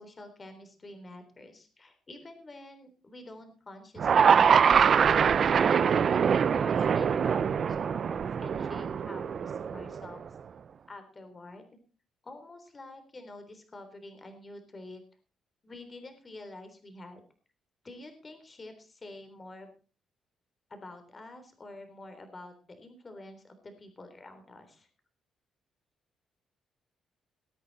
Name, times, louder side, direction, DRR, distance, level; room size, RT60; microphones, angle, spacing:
voice 1, 0.0-5.0 5.6-10.2 10.9-11.6 12.2-15.0 15.6-17.2 17.8-19.7 20.7-24.9, left 2 dB, 30° left, 7 dB, 3.6 m, -48 dB
sound 1, 4.0-10.2, right 7 dB, 50° right, 0.7 m, -24 dB
20.5 x 8.8 x 4.2 m, 0.36 s
cardioid pair, 90°, 0 cm